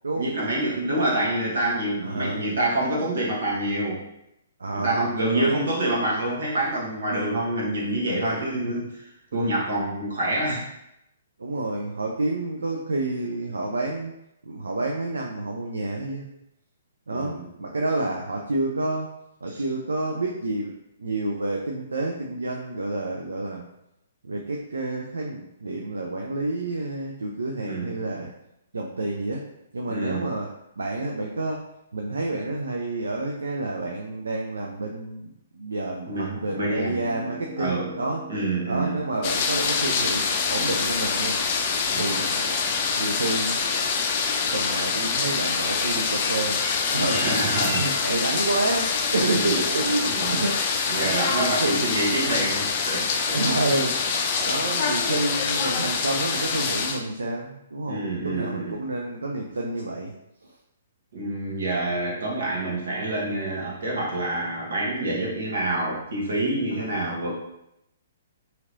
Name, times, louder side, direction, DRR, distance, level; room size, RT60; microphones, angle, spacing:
voice 1, 0.2-4.0 4.7-9.0 9.3-10.6 17.1-17.5 19.5-19.6 27.6-28.0 29.9-30.3 36.1-36.9 37.6-37.9 38.3-39.0 41.9-42.2 47.1-47.8 49.3-49.6 50.1-50.4 50.9-53.4 57.9-58.8 61.1-67.3, right 1 dB, 70° right, -4 dB, 1.2 m, -27 dB
voice 2, 2.0-2.4 4.6-5.6 8.5-8.8 11.4-14.1 14.5-16.3 17.1-19.1 19.4-20.7 21.0-23.7 24.2-28.3 28.7-29.5 29.7-30.5 30.8-31.6 31.9-38.2 38.7-41.4 41.9-42.6 42.9-43.6 44.5-46.6 46.9-47.2 47.7-50.6 50.9-51.9 53.3-54.0 54.4-60.1 66.9-67.0, right 2 dB, 85° right, 0 dB, 0.4 m, -29 dB
Piano, 36.3-44.2, right 1 dB, 20° right, 1.0 m, -44 dB
sound 1, 39.2-57.0, left 5 dB, 40° left, 0.4 m, -25 dB
2.9 x 2.8 x 2.6 m, 0.84 s
hypercardioid pair, 135°, 0 cm